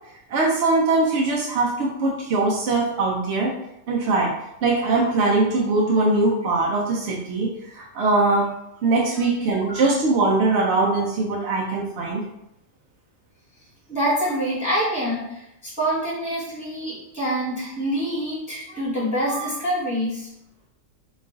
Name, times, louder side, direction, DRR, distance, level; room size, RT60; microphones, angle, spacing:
voice 1, 0.3-3.5 3.9-4.3 4.6-8.5 8.8-12.2, right 3 dB, 65° right, -3 dB, 0.6 m, -21 dB
voice 2, 13.9-20.3, equal, 5° right, -8 dB, 1.0 m, -26 dB
3.0 x 2.4 x 3.7 m, 0.82 s
omnidirectional pair, 1.7 m